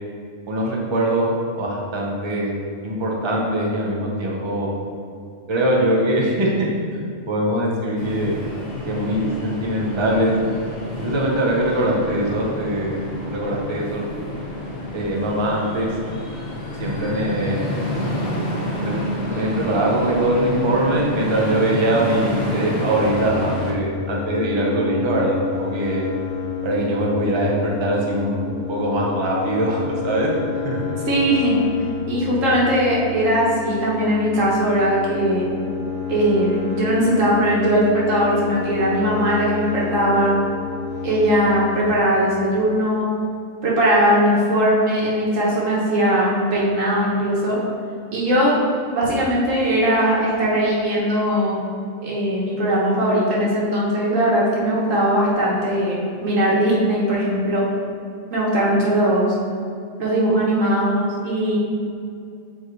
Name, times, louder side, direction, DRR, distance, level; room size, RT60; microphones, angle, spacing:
voice 1, 0.5-2.5 2.8-4.7 5.5-6.5 7.3-8.4 8.9-10.3 11.0-14.0 14.9-15.9 16.8-17.8 18.8-18.9 19.3-26.0 26.6-30.3 30.6-30.8, right 1 dB, 25° right, -3 dB, 0.7 m, -22 dB
sound 1, 8.0-23.7, left 1 dB, 40° left, 1.0 m, -28 dB
sound 2, 22.9-41.8, left 7 dB, 85° left, 1.3 m, -30 dB
voice 2, 31.1-31.6 32.1-35.5 36.1-40.4 41.0-43.1 43.6-47.6 48.1-48.6 48.9-51.6 52.0-57.7 58.3-59.3 60.0-61.6, equal, 85° right, -5 dB, 1.7 m, -19 dB
7.1 x 4.2 x 3.2 m, 2.3 s
omnidirectional pair, 1.3 m